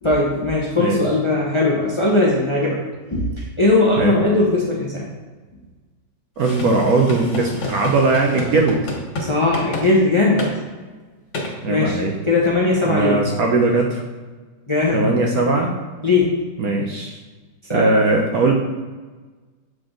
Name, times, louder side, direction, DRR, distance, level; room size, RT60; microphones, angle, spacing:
voice 1, 0.0-2.8 3.1-5.1 9.3-10.5 11.7-12.0 12.2-13.2 14.7-15.1 16.0-16.4 17.7-17.9, left 2 dB, 20° left, -4 dB, 0.8 m, -19 dB
sound 1, 6.4-9.3 9.5-9.9 10.4-10.5 11.3-11.5, left 2 dB, 80° left, 2.1 m, -28 dB
voice 2, 6.4-8.8 11.6-12.1 12.8-14.0 14.9-15.7 16.6-17.2 17.7-18.5, right 3 dB, 65° right, 1 dB, 1.0 m, -19 dB
7.6 x 4.0 x 3.8 m, 1.3 s
omnidirectional pair, 2.0 m